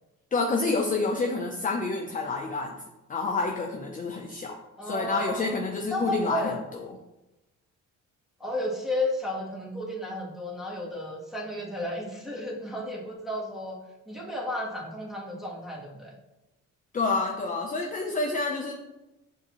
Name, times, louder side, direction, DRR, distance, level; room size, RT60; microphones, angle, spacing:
voice 1, 0.3-2.8 3.1-4.6 4.8-7.0 16.9-18.7, left 3 dB, 25° left, 1 dB, 0.5 m, -28 dB
voice 2, 4.8-5.6 5.9-6.6 8.4-13.8 14.1-16.1, left 1 dB, ahead, -3 dB, 1.3 m, -33 dB
6.3 x 2.7 x 3.0 m, 0.99 s
cardioid pair, 90°, 30 cm